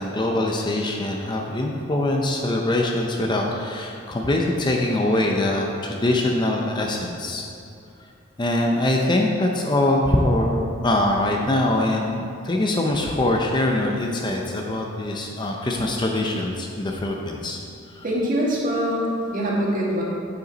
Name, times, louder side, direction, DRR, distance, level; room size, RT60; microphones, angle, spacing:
voice 1, 0.0-7.4 8.4-17.6 17.9-18.0, left 1 dB, 20° left, 0 dB, 0.5 m, -23 dB
voice 2, 18.0-20.0, equal, 40° right, -4 dB, 1.8 m, -23 dB
7.9 x 7.8 x 4.1 m, 2.5 s
head